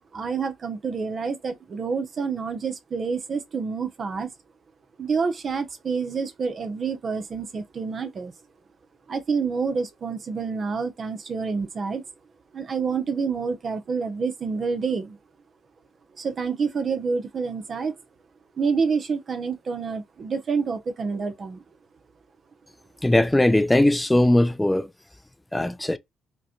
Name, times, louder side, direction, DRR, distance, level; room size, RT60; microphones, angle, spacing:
voice 1, 0.1-4.3 5.0-8.3 9.1-12.0 12.5-15.2 16.2-17.9 18.6-21.6, right 5 dB, 45° right, 0.6 m, -28 dB
voice 2, 23.0-24.9 25.5-26.0, left 1 dB, 10° left, 0.4 m, -19 dB
5.2 x 2.2 x 2.8 m
cardioid pair, 90°, 0 cm